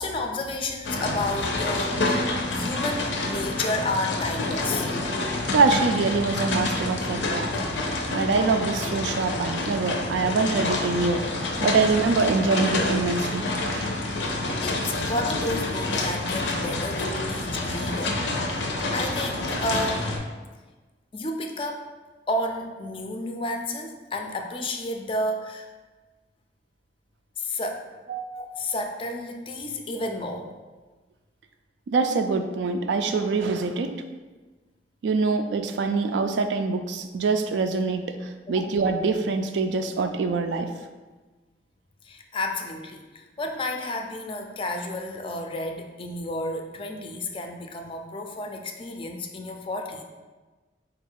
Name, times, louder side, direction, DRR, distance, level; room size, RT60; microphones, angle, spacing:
voice 1, 0.0-4.9 14.3-20.2 21.1-21.9 22.3-25.7 27.4-27.9 28.4-30.5 38.5-38.7 42.0-50.0, left 1 dB, 30° left, 4 dB, 0.3 m, -31 dB
sound 1, 0.8-20.2, left 2 dB, 90° left, 0.5 m, -28 dB
voice 2, 5.5-7.5 7.8-11.2 11.6-13.5 13.7-14.0 28.1-28.4 31.9-34.0 35.0-40.7, right 4 dB, 80° right, 7 dB, 0.3 m, -24 dB
3.9 x 2.4 x 4.5 m, 1.3 s
head